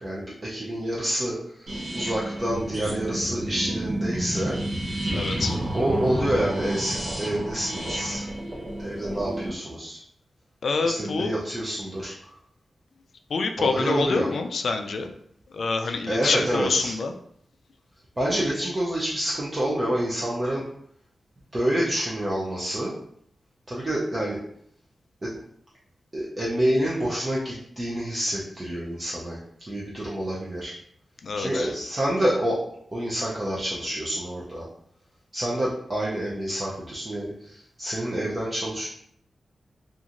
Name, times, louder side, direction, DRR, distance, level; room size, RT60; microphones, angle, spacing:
voice 1, 0.0-4.6 5.7-8.2 8.8-10.0 10.8-12.3 13.6-14.3 16.1-16.9 18.2-20.6 21.5-22.9 23.7-24.4 25.2-25.3 26.1-30.7 31.3-32.6 32.9-34.6 35.3-38.9, right 1 dB, 25° right, -6 dB, 0.5 m, -28 dB
sound 1, 1.7-9.5, right 1 dB, 60° right, 0.8 m, -30 dB
voice 2, 5.1-5.6 10.6-11.3 13.3-15.1 15.5-17.1 31.2-31.7, left 4 dB, 70° left, 5 dB, 0.3 m, -26 dB
2.9 x 2.4 x 2.5 m, 0.67 s
wide cardioid pair, 120°, 0 cm